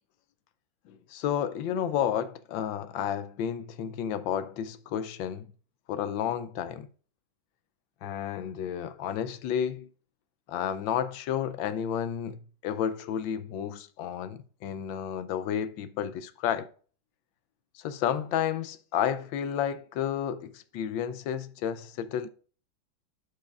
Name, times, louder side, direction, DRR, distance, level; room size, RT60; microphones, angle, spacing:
voice 1, 0.9-5.5 5.9-6.9 8.0-9.9 10.5-16.7 17.7-22.3, left 9 dB, 75° left, 1.3 m, -31 dB
11.5 x 4.8 x 2.3 m
omnidirectional pair, 2.2 m